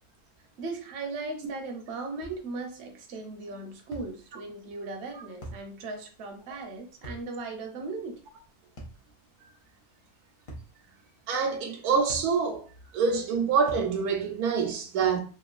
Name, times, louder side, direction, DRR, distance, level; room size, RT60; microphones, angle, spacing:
voice 1, 0.6-8.2, right 3 dB, 55° right, 0.8 m, -37 dB
sound 1, 2.2-2.4 3.9-4.1 5.4-5.7 7.0-7.3 8.8-9.0 10.5-10.7 12.1-12.3 13.7-13.9, right 1 dB, 55° left, 0.3 m, -42 dB
voice 2, 11.3-12.7 12.9-15.2, right 5 dB, 80° right, 1.1 m, -26 dB
2.9 x 2.4 x 2.4 m
omnidirectional pair, 1.6 m